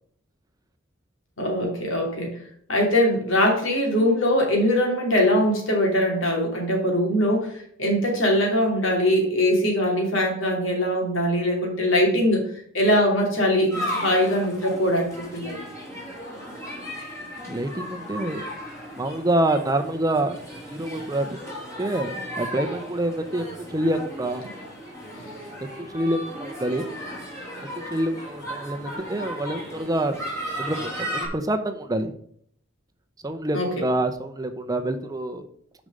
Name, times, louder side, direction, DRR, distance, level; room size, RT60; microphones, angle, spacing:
voice 1, 1.4-2.4 2.7-7.5 7.8-12.5 12.7-15.6 25.2-25.3 33.5-33.7, equal, 80° left, 0 dB, 2.9 m, -22 dB
sound 1, 13.7-31.3, equal, 15° left, 3.2 m, -35 dB
voice 2, 17.5-18.5 19.0-20.4 20.7-21.4 21.8-24.4 25.9-26.9 27.9-30.2 30.6-32.1 33.2-35.5, right 1 dB, 20° right, 7 dB, 0.7 m, -26 dB
6.7 x 5.2 x 6.6 m, 0.63 s
head